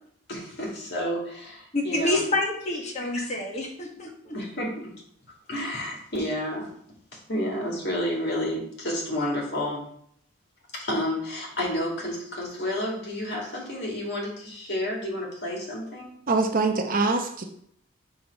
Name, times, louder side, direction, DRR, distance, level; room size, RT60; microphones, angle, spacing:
voice 1, 0.3-2.2 4.3-4.8 5.5-6.7 7.3-9.9 10.7-16.2, left 1 dB, 55° left, -2 dB, 2.2 m, -30 dB
voice 2, 1.7-4.3, left 2 dB, 35° left, 1 dB, 1.3 m, -28 dB
voice 3, 16.3-17.4, right 3 dB, 45° right, 4 dB, 0.8 m, -24 dB
6.0 x 3.7 x 5.2 m, 0.66 s
head